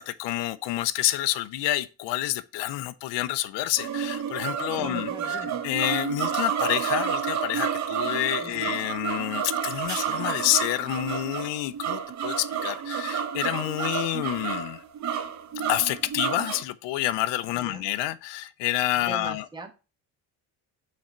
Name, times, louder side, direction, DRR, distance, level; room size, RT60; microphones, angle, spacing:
voice 1, 0.0-14.8 15.7-19.4, left 15 dB, 90° left, 0.7 m, -28 dB
sound 1, 3.8-16.6, right 8 dB, 45° right, 0.7 m, -30 dB
voice 2, 4.8-5.6 8.4-8.8 17.5-17.8 18.9-19.7, right 2 dB, 10° right, 1.2 m, -41 dB
6.5 x 4.3 x 4.3 m
cardioid pair, 115°, 41 cm